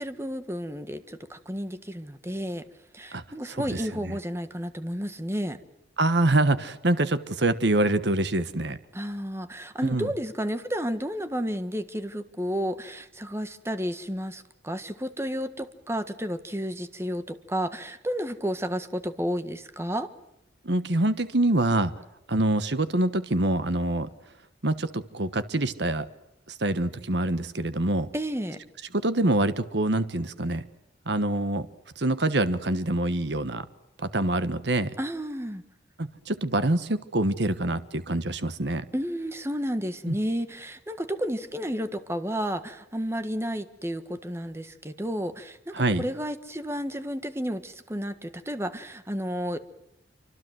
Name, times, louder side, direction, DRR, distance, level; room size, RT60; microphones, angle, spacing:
voice 1, 0.0-2.6 2.9-5.6 8.9-20.1 28.1-28.6 35.0-35.6 38.9-49.6, equal, 15° right, 10 dB, 1.6 m, -32 dB
voice 2, 6.0-8.8 9.8-10.1 20.6-21.9 22.3-24.1 24.6-26.1 26.5-28.1 28.9-30.6 31.1-31.7 32.0-33.7 34.0-34.9 36.0-38.8 40.1-40.2 45.7-46.0, right 2 dB, 65° right, 12 dB, 1.3 m, -25 dB
27.0 x 25.0 x 7.8 m, 0.87 s
head